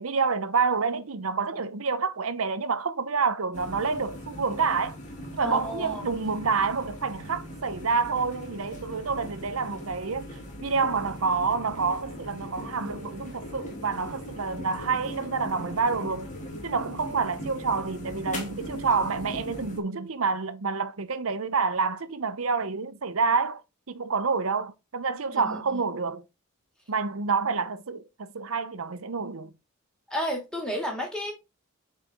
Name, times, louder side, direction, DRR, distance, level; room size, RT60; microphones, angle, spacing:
voice 1, 0.0-5.0 5.4-16.3 16.6-23.6 23.9-26.2 26.9-29.5, right 4 dB, 75° right, 0.8 m, -28 dB
sound 1, 3.5-19.8, equal, 35° left, 2.2 m, -40 dB
voice 2, 5.4-6.1 25.4-25.6 30.1-31.3, equal, 5° left, 2.5 m, -31 dB
8.5 x 4.3 x 3.5 m
head